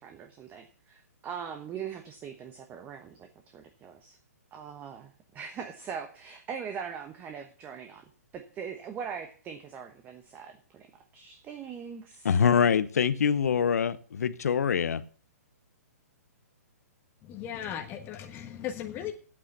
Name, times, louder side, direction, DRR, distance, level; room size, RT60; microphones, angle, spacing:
voice 1, 0.0-3.3 3.5-4.2 4.5-8.0 8.3-10.9 11.1-12.4, right 7 dB, 20° right, 1.0 m, -41 dB
voice 2, 12.2-15.0, left 7 dB, 75° left, 0.9 m, -24 dB
voice 3, 17.2-19.1, left 9 dB, 25° left, 1.3 m, -37 dB
8.7 x 8.7 x 6.7 m
hypercardioid pair, 140°, 9 cm